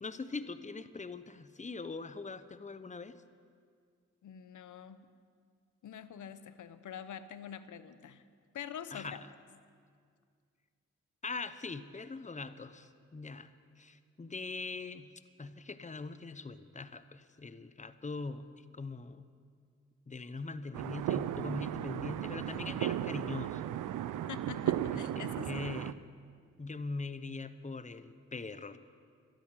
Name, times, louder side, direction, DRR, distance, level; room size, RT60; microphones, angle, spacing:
voice 1, 0.0-3.2 8.9-9.2 11.2-13.5 13.8-15.1 15.4-18.5 18.7-19.3 20.1-23.7 24.9-25.9 26.6-28.8, left 3 dB, 25° left, 13 dB, 0.8 m, -42 dB
voice 2, 4.2-5.1 5.8-8.2 8.5-9.2 24.3-25.7, left 8 dB, 70° left, 13 dB, 0.8 m, -45 dB
sound 1, 20.7-25.9, right 12 dB, 80° right, 0.5 m, -35 dB
12.5 x 9.2 x 10.0 m, 2.1 s
supercardioid pair, 45°, 31 cm